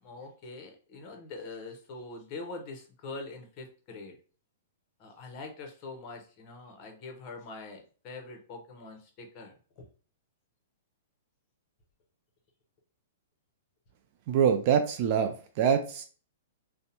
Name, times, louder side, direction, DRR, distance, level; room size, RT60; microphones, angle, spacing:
voice 1, 0.0-4.2 5.0-9.8, left 3 dB, 35° left, 0.8 m, -44 dB
voice 2, 14.3-16.0, right 7 dB, 45° right, 0.3 m, -25 dB
2.6 x 2.1 x 2.7 m
hypercardioid pair, 135°, 0 cm